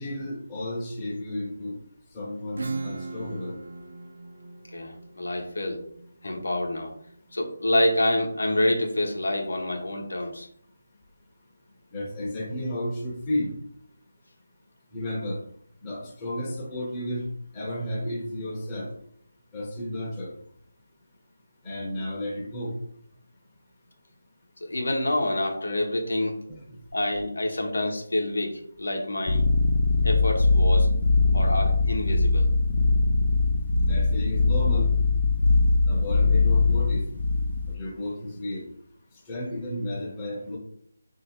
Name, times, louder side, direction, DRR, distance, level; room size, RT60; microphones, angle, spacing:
voice 1, 0.0-1.8 2.1-3.6 11.9-13.5 14.9-15.4 15.8-17.3 17.5-18.9 19.5-20.3 21.6-22.7 26.5-26.6 33.8-34.9 35.8-37.0 37.7-38.7 39.3-40.6, left 1 dB, 15° left, -5 dB, 0.9 m, -32 dB
Acoustic guitar / Strum, 2.6-7.9, right 3 dB, 60° right, 0.5 m, -39 dB
voice 2, 4.7-5.8 6.2-6.9 7.3-10.5 24.6-26.4 26.9-29.4 30.0-30.9 31.3-32.5, left 1 dB, 80° left, 2 dB, 1.0 m, -27 dB
sound 1, 29.3-37.7, left 3 dB, 40° left, 0.5 m, -21 dB
3.1 x 2.8 x 4.4 m, 0.68 s
figure-of-eight pair, 170°, 0 cm